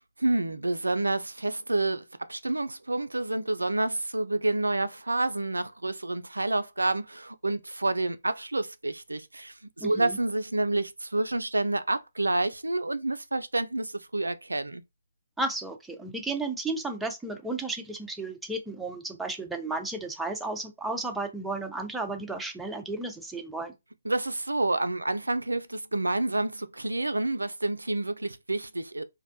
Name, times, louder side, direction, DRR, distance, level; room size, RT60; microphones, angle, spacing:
voice 1, 0.2-14.8 24.0-29.0, right 2 dB, 90° right, 0.3 m, -29 dB
voice 2, 9.8-10.2 15.4-23.7, right 2 dB, 5° right, 0.4 m, -33 dB
2.5 x 2.2 x 2.6 m
figure-of-eight pair, 140°, 0 cm